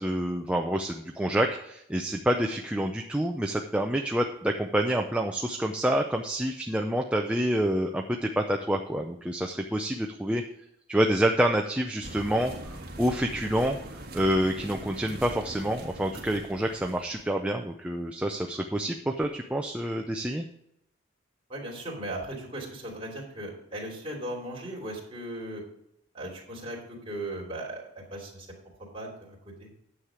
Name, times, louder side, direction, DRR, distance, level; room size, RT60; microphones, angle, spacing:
voice 1, 0.0-10.4 10.9-13.8 14.1-20.5, right 1 dB, 5° right, 3 dB, 0.5 m, -27 dB
sound 1, 12.0-17.3, right 1 dB, 45° right, 1.7 m, -42 dB
voice 2, 21.5-25.6 26.1-28.5 28.9-29.7, right 1 dB, 25° right, -3 dB, 2.9 m, -37 dB
9.8 x 7.4 x 4.9 m, 0.76 s
head